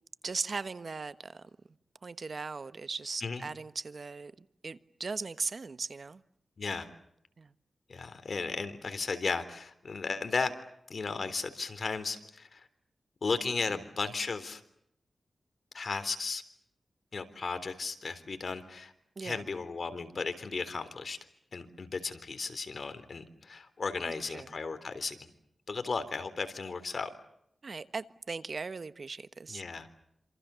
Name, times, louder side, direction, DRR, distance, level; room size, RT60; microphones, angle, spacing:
voice 1, 0.2-1.5 2.0-4.3 4.6-6.2 7.4-7.5 19.2-19.4 24.0-24.5 27.6-29.6, right 4 dB, 55° right, 1.3 m, -38 dB
voice 2, 6.6-6.9 7.9-10.5 10.9-12.7 13.2-14.6 15.7-16.4 17.1-18.9 19.2-21.2 21.5-25.2 25.7-27.1 29.5-29.9, left 4 dB, 60° left, 3.7 m, -35 dB
28.0 x 27.0 x 7.1 m
cardioid pair, 65°, 0 cm